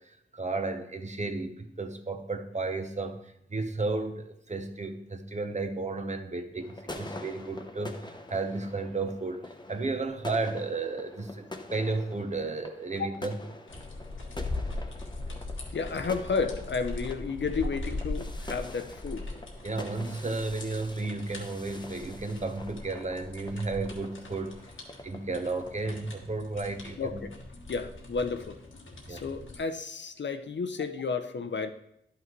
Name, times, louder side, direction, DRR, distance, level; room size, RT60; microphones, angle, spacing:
voice 1, 0.0-13.4 19.6-24.7 25.0-27.3 29.1-29.2, right 3 dB, 35° right, 6 dB, 0.9 m, -33 dB
sound 1, 6.6-26.0, left 2 dB, 20° left, 0.8 m, -46 dB
sound 2, 13.7-29.6, left 2 dB, 90° left, 1.3 m, -40 dB
voice 2, 15.7-19.4 27.0-27.3 27.7-28.6 29.1-31.7, left 5 dB, 65° left, 9 dB, 0.6 m, -32 dB
11.0 x 5.8 x 3.0 m, 0.75 s
cardioid pair, 55°, 20 cm